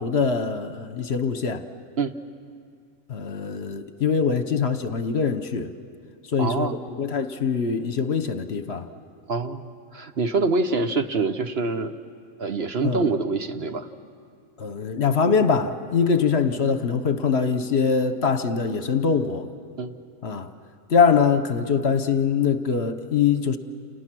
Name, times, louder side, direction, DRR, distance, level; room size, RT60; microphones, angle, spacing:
voice 1, 0.0-1.6 3.1-5.7 6.3-8.9 12.8-13.1 14.6-19.4 20.2-20.5 20.9-23.6, left 6 dB, 55° left, 10 dB, 1.1 m, -23 dB
voice 2, 6.4-6.8 9.3-12.0 12.4-13.9 19.8-19.9, right 3 dB, 55° right, 8 dB, 1.0 m, -25 dB
29.0 x 29.0 x 6.1 m, 2.3 s
omnidirectional pair, 1.4 m